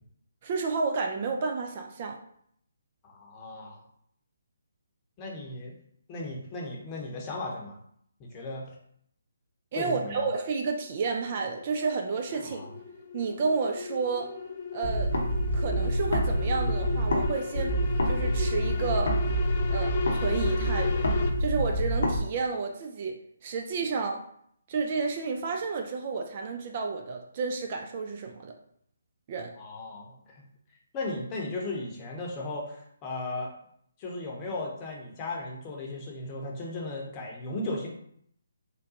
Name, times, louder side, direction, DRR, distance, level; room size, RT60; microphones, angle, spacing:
voice 1, 0.4-2.2 9.7-12.6 13.1-14.3 14.7-15.1 15.5-17.8 18.1-19.1 19.7-21.0 21.4-23.1 23.4-24.2 24.7-28.5 29.3-29.5, right 4 dB, 40° right, 3 dB, 0.4 m, -31 dB
voice 2, 3.0-3.8 5.2-5.7 6.1-7.8 8.2-8.8 9.7-10.3 12.3-12.7 29.6-30.4 30.9-33.5 34.0-37.9, left 2 dB, 25° left, -2 dB, 0.8 m, -36 dB
sound 1, 10.8-21.3, left 6 dB, 40° left, 0.4 m, -36 dB
sound 2, 14.8-17.3 17.5-22.2, equal, 65° left, 0.7 m, -27 dB
3.6 x 2.2 x 2.8 m, 0.68 s
figure-of-eight pair, 145°, 0 cm